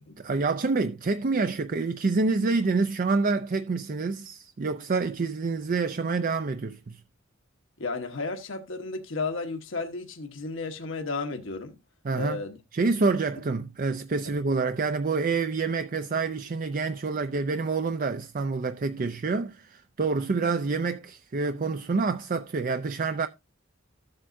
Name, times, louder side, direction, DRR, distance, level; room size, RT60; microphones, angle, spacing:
voice 1, 0.2-7.0 12.0-12.4 12.7-23.3, right 4 dB, 40° right, 0.5 m, -27 dB
voice 2, 7.8-11.8 12.1-12.6 14.2-14.4, left 3 dB, 65° left, 1.2 m, -33 dB
14.0 x 7.9 x 2.6 m
head